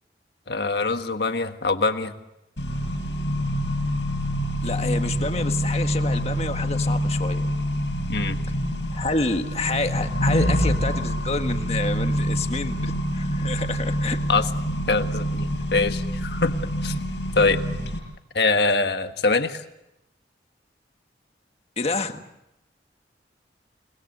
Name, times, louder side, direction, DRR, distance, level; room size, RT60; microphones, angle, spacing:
voice 1, 0.5-2.1 8.1-8.4 14.3-14.5 14.9-16.9 17.3-17.6 18.3-19.6, left 3 dB, 65° left, 8 dB, 1.5 m, -23 dB
Accelerating revving vroom, 2.6-18.0, equal, 90° left, 7.5 m, -26 dB
voice 2, 4.6-7.5 8.9-14.2 21.8-22.2, left 3 dB, 35° left, 7 dB, 1.5 m, -28 dB
29.5 x 20.0 x 6.7 m, 0.87 s
head